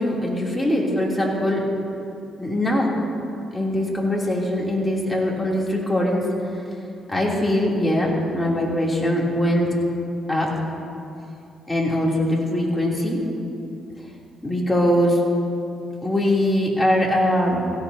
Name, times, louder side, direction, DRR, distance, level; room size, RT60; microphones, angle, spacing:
voice 1, 0.0-1.6 2.4-2.9 3.5-6.3 7.1-9.8 10.3-10.6 11.7-13.2 14.4-15.2 16.0-17.7, left 1 dB, 10° left, -4 dB, 2.9 m, -22 dB
17.5 x 16.0 x 2.8 m, 2.7 s
cardioid pair, 90°, 0 cm